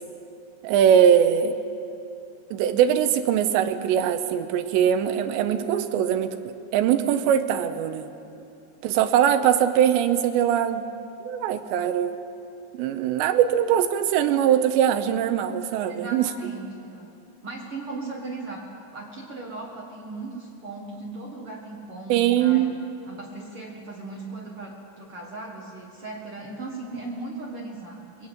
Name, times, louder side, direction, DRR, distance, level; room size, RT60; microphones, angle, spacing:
voice 1, 0.6-1.6 2.5-8.1 8.8-10.9 11.3-12.2 12.7-16.3 22.1-22.7, right 9 dB, 80° right, 9 dB, 3.0 m, -21 dB
voice 2, 15.8-17.1 17.4-22.7 23.0-28.3, right 3 dB, 65° right, -1 dB, 1.3 m, -37 dB
22.0 x 16.0 x 8.9 m, 2.8 s
omnidirectional pair, 5.3 m